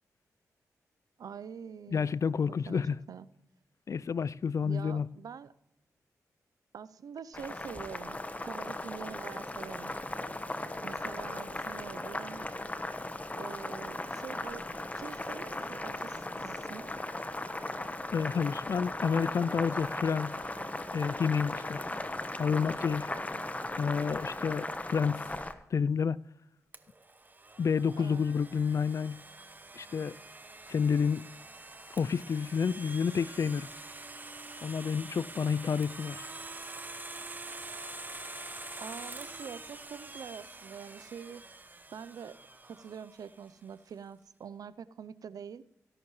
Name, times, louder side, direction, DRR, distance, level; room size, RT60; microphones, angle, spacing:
voice 1, 1.2-2.1 2.7-3.3 4.6-5.5 6.7-10.0 10.8-12.5 13.4-16.9 28.0-28.2 38.8-41.4 41.9-42.4 42.7-45.6, right 7 dB, 70° right, 0.6 m, -45 dB
voice 2, 1.9-3.0 3.9-5.1 18.1-20.3 20.9-21.8 22.4-23.1 23.8-25.2 25.7-26.2 27.6-29.2 29.8-30.1 30.7-31.2 31.9-33.7 34.6-36.2, left 6 dB, 55° left, 0.4 m, -29 dB
Boiling, 7.3-25.5, left 2 dB, 25° left, 1.2 m, -37 dB
Domestic sounds home sounds, 26.7-43.5, right 2 dB, 30° right, 1.1 m, -46 dB
17.5 x 11.0 x 3.2 m
supercardioid pair, 45°, 6 cm